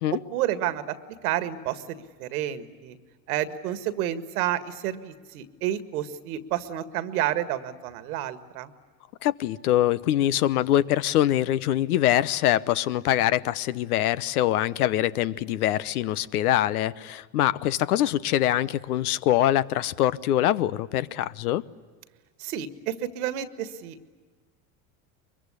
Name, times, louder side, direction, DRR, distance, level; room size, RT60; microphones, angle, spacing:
voice 1, 0.3-0.9 1.2-3.0 3.3-8.7 22.4-24.1, right 12 dB, 75° right, 1.9 m, -30 dB
voice 2, 9.2-21.6, left 13 dB, 80° left, 1.0 m, -24 dB
24.0 x 23.0 x 9.8 m
hypercardioid pair, 95°, 44 cm